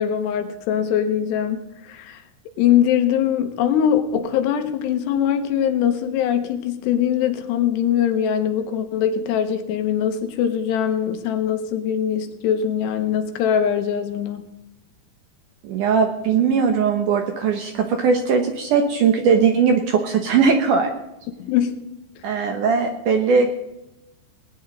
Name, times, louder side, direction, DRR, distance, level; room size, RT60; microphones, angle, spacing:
voice 1, 0.0-2.2 2.6-14.5 21.4-21.8 22.3-22.4, left 9 dB, 90° left, 7 dB, 3.2 m, -22 dB
voice 2, 15.6-20.9 22.2-23.5, right 5 dB, 70° right, 5 dB, 2.0 m, -19 dB
19.5 x 10.0 x 3.9 m, 0.93 s
omnidirectional pair, 4.8 m